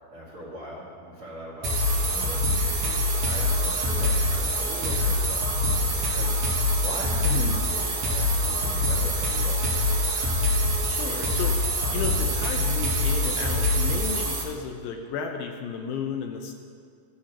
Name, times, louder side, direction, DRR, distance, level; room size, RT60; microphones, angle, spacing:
voice 1, 0.1-1.7 2.1-5.5 6.1-6.3 6.8-9.7, right 1 dB, 50° right, -8 dB, 1.7 m, -40 dB
sound 1, 1.6-14.4, left 1 dB, 80° right, 1.2 m, -24 dB
voice 2, 7.2-7.6 10.9-16.5, left 6 dB, 80° left, 3 dB, 2.4 m, -33 dB
15.0 x 8.5 x 2.9 m, 2.1 s
omnidirectional pair, 4.5 m